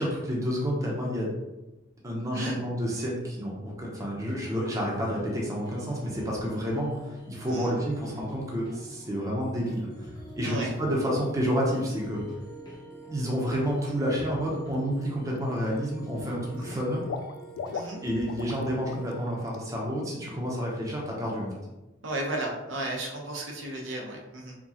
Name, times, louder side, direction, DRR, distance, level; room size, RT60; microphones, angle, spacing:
voice 1, 0.0-1.3 2.0-9.9 10.4-12.2 13.1-17.0 18.0-21.5, equal, 15° right, -3 dB, 0.7 m, -29 dB
voice 2, 2.3-2.7 7.5-7.7 10.4-10.7 16.6-16.8 17.7-18.0 22.0-24.6, right 1 dB, 80° right, 0 dB, 0.7 m, -34 dB
sound 1, 4.2-19.3, right 1 dB, 20° left, 0.8 m, -45 dB
Water / Liquid, 14.5-14.8 15.1-15.8 16.1-18.6 18.9-19.1 19.5-19.6, left 5 dB, 90° left, 0.3 m, -39 dB
4.7 x 2.3 x 2.8 m, 1.0 s
head